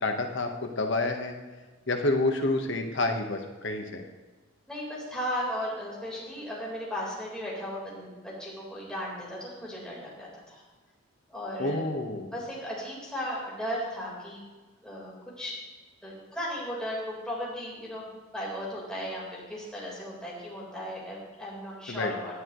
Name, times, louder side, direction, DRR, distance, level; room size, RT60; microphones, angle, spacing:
voice 1, 0.0-1.3 1.9-4.0 11.6-12.3 21.9-22.1, left 2 dB, 60° left, 4 dB, 1.2 m, -28 dB
voice 2, 4.7-10.6 11.3-11.9 12.3-14.4 14.8-15.6 16.0-22.4, equal, 5° left, -6 dB, 4.0 m, -36 dB
17.5 x 10.5 x 3.1 m, 1.3 s
head